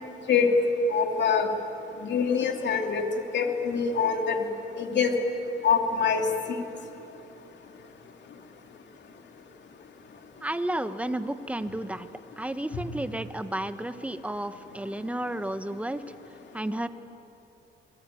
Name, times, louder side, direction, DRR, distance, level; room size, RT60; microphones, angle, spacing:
voice 1, 0.9-1.5 2.1-3.0 3.3-4.4 4.8-5.1 5.6-6.2, left 6 dB, 65° left, 3 dB, 2.8 m, -24 dB
voice 2, 10.4-12.1 12.4-16.0 16.5-16.9, right 1 dB, 5° right, 10 dB, 1.3 m, -32 dB
28.5 x 21.0 x 9.3 m, 2.9 s
cardioid pair, 90°, 20 cm